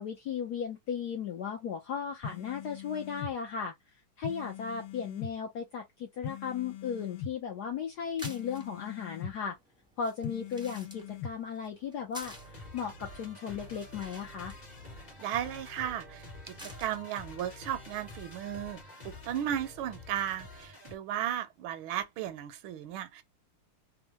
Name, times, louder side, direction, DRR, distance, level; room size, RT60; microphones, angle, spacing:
voice 1, 0.0-3.7 4.2-9.6 10.0-14.5, left 7 dB, 70° left, 0.9 m, -36 dB
sound 1, 2.2-3.3 4.2-5.3 6.2-7.3 8.2-9.3 10.2-11.3, left 7 dB, 90° left, 1.5 m, -41 dB
sound 2, 7.9-18.7, equal, 5° right, 0.5 m, -53 dB
sound 3, 12.2-21.0, left 2 dB, 25° left, 0.9 m, -48 dB
voice 2, 15.2-23.2, right 11 dB, 75° right, 1.3 m, -35 dB
3.6 x 2.1 x 2.8 m
omnidirectional pair, 2.4 m